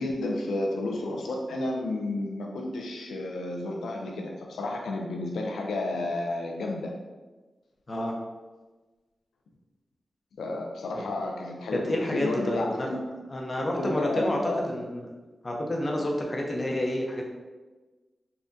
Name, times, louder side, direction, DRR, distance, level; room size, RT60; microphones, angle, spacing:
voice 1, 0.0-6.9 10.4-13.0 13.8-14.6, left 2 dB, 90° left, 1 dB, 0.4 m, -31 dB
voice 2, 11.7-12.9 13.3-14.4 14.7-15.0 15.4-17.3, left 1 dB, 45° left, 0 dB, 0.6 m, -29 dB
3.6 x 2.1 x 2.6 m, 1.2 s
cardioid pair, 40°, 0 cm